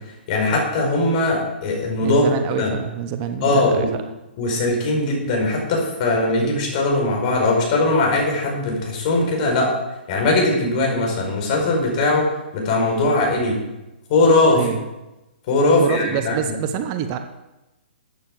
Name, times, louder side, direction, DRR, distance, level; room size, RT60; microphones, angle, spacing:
voice 1, 0.3-2.3 2.6-2.7 3.4-3.9 4.4-9.7 10.1-12.3 12.5-13.6 14.1-14.6 15.5-16.5, left 2 dB, 45° left, 0 dB, 4.9 m, -20 dB
voice 2, 2.0-4.0 14.5-14.8 15.8-17.2, right 8 dB, 35° right, 8 dB, 0.9 m, -26 dB
13.5 x 8.9 x 4.9 m, 0.99 s
hypercardioid pair, 140°, 6 cm